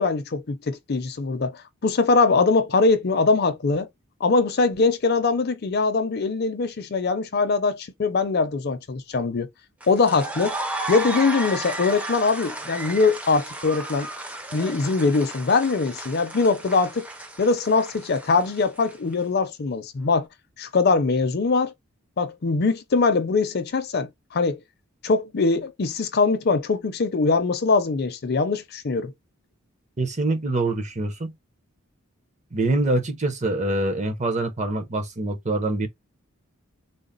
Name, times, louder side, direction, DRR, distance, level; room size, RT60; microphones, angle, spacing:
voice 1, 0.0-1.5 1.8-3.9 4.2-9.5 9.9-10.6 10.9-14.1 14.5-17.1 17.4-20.3 20.6-21.7 22.2-24.6 25.0-29.1, left 4 dB, 50° left, 0.5 m, -22 dB
sound 1, 9.8-19.1, right 1 dB, 5° right, 0.5 m, -34 dB
voice 2, 30.0-31.3 32.5-35.9, right 2 dB, 35° right, 0.8 m, -25 dB
3.9 x 2.0 x 3.8 m
head